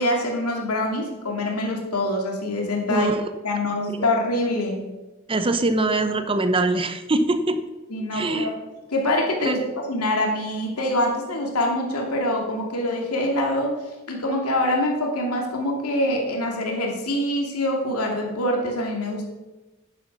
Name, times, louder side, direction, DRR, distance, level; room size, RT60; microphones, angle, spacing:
voice 1, 0.0-3.1 3.4-4.8 7.9-8.6 8.9-13.8 14.1-19.3, left 1 dB, 90° left, 1 dB, 2.6 m, -25 dB
voice 2, 2.9-3.2 5.3-7.6 8.1-8.5 9.5-9.6, right 2 dB, 25° right, 9 dB, 0.8 m, -23 dB
11.0 x 10.5 x 6.1 m, 1.1 s
head